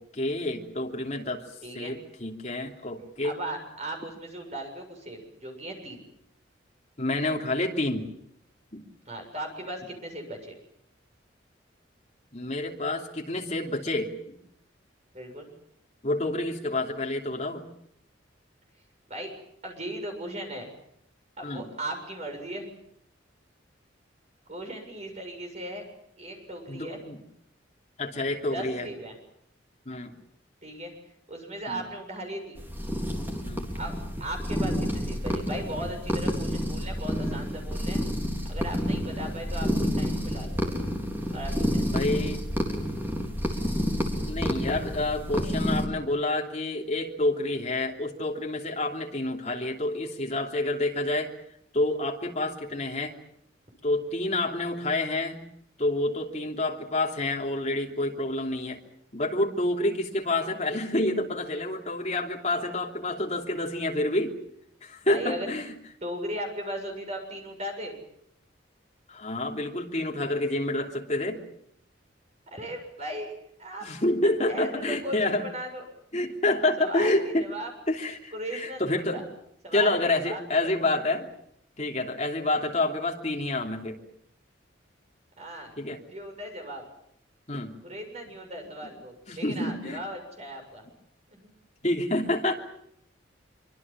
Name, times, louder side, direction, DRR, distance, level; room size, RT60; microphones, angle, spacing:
voice 1, 0.0-1.4 1.7-3.4 7.0-8.1 8.7-8.8 12.3-14.4 16.0-17.6 21.4-21.6 26.7-27.2 28.0-28.9 29.8-30.1 31.7-31.8 33.4-33.6 41.8-42.4 44.2-51.3 51.7-53.1 53.8-55.4 55.8-58.8 59.1-64.4 64.8-65.7 69.1-71.4 73.8-75.5 76.1-77.5 77.9-79.2 79.7-81.3 81.8-84.0 85.8-86.0 87.5-87.7 89.3-90.0 91.8-92.6, left 2 dB, 35° left, 1 dB, 3.1 m, -28 dB
voice 2, 1.6-1.9 3.2-6.1 9.1-10.5 15.1-15.5 19.1-19.3 19.6-20.7 21.4-22.7 24.5-25.8 26.2-27.0 28.5-29.2 30.6-30.9 31.3-32.7 33.7-33.9 34.2-38.0 38.5-39.7 39.9-40.7 41.3-42.2 65.0-65.5 66.0-67.9 72.5-73.3 73.6-73.9 74.5-75.8 76.8-77.7 78.3-79.2 79.6-81.0 85.4-85.7 86.1-86.8 87.8-90.8 91.3-91.5, right 1 dB, 35° right, 3 dB, 7.1 m, -37 dB
sound 1, 32.6-45.9, equal, 10° right, 3.9 m, -29 dB
25.0 x 24.5 x 7.5 m, 0.73 s
head